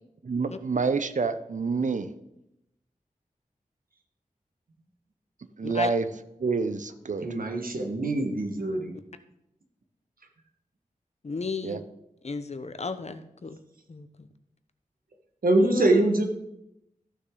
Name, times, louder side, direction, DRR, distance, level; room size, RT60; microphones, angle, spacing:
voice 1, 0.2-2.1 5.6-6.1 6.4-7.3 11.6-11.8, right 4 dB, 60° right, 11 dB, 0.7 m, -27 dB
voice 2, 7.2-8.9 15.4-16.2, right 2 dB, 85° right, 3 dB, 1.4 m, -24 dB
voice 3, 11.2-11.8 12.2-13.6 13.9-14.3 15.6-16.2, left 4 dB, 50° left, 10 dB, 0.7 m, -34 dB
14.0 x 6.5 x 3.8 m, 0.84 s
wide cardioid pair, 85°, 14 cm